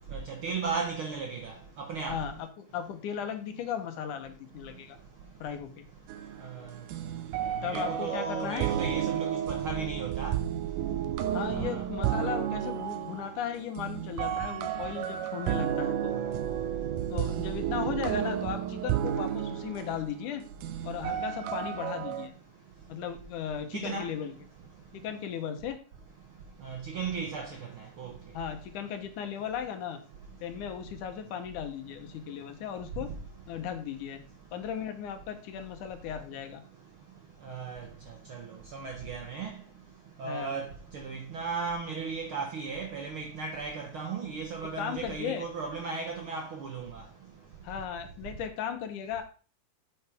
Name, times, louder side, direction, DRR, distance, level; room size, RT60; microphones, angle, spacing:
voice 1, 0.1-2.2 6.4-6.6 7.6-10.4 11.5-11.8 16.1-16.2 23.7-24.1 26.6-27.6 28.0-28.1 37.4-37.9 38.3-38.4 38.7-39.5 40.2-40.7 40.9-47.0, right 5 dB, 65° right, 1.4 m, -35 dB
voice 2, 2.1-5.0 5.4-5.8 7.6-8.6 11.3-16.2 17.1-20.4 20.8-22.3 22.9-24.3 24.9-25.8 28.3-30.0 30.4-33.1 33.5-34.2 34.5-36.6 40.2-40.6 44.8-45.5 47.6-49.2, left 8 dB, 75° left, 2.5 m, -36 dB
sound 1, 6.1-22.3, right 10 dB, 80° right, 2.3 m, -32 dB
8.7 x 7.9 x 3.5 m
omnidirectional pair, 3.7 m